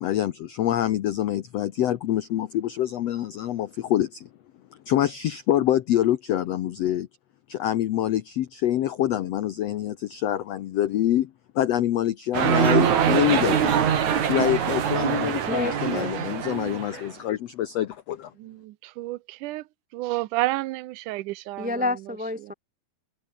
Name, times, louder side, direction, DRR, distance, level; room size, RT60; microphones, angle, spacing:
voice 1, 0.0-4.3 4.9-7.1 7.5-13.8 14.2-18.3, left 12 dB, 75° left, 1.5 m, -25 dB
sound 1, 12.3-17.0, right 8 dB, 55° right, 3.4 m, -23 dB
voice 2, 15.5-16.1 21.6-22.5, left 2 dB, 10° right, 0.5 m, -29 dB
voice 3, 18.4-19.6 19.9-21.8 22.4-22.5, right 18 dB, 75° right, 2.1 m, -30 dB
omnidirectional pair, 4.2 m